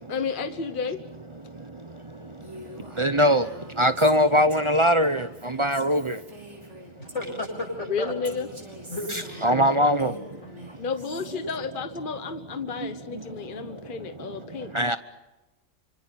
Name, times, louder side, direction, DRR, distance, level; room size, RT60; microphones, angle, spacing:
voice 1, 0.1-1.0 7.9-8.5 10.8-14.7, left 5 dB, 45° left, 1.3 m, -31 dB
Female speech woman speaking, 2.4-7.8 8.2-11.4, right 1 dB, 90° right, 5.9 m, -45 dB
voice 2, 3.0-3.5 3.8-6.2 9.4-10.1 12.8-12.9 14.7-15.0, equal, 30° right, 0.8 m, -21 dB
voice 3, 7.0-8.1 8.9-10.1, left 2 dB, 90° left, 8.3 m, -34 dB
28.5 x 25.5 x 5.9 m
omnidirectional pair, 1.2 m